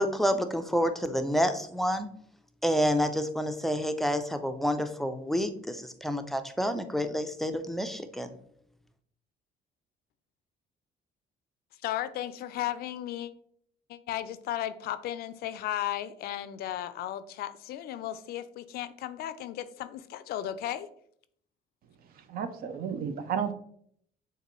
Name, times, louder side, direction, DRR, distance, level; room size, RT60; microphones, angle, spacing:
voice 1, 0.0-2.1 2.6-8.3, equal, ahead, 8 dB, 0.4 m, -28 dB
voice 2, 11.8-13.3 13.9-20.9, left 12 dB, 70° left, 13 dB, 0.4 m, -35 dB
voice 3, 22.3-23.5, right 7 dB, 60° right, 9 dB, 0.6 m, -32 dB
6.6 x 2.6 x 3.0 m, 0.65 s
cardioid pair, 110°, 17 cm